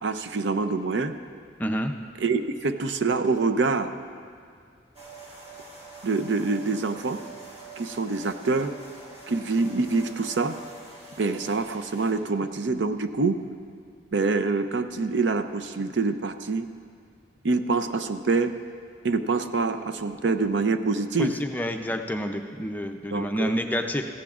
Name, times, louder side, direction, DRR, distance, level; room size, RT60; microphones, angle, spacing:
voice 1, 0.0-1.1 2.2-3.9 6.0-7.2 7.8-8.7 9.3-10.6 11.2-13.4 14.1-16.7 17.4-18.5 19.0-21.4 23.1-23.5, right 3 dB, 80° right, 9 dB, 0.5 m, -25 dB
voice 2, 1.6-1.9 21.2-24.1, equal, 10° left, 5 dB, 0.4 m, -28 dB
sound 1, 4.9-12.1, right 2 dB, 35° right, 1.8 m, -45 dB
17.0 x 14.5 x 2.4 m, 2.2 s
head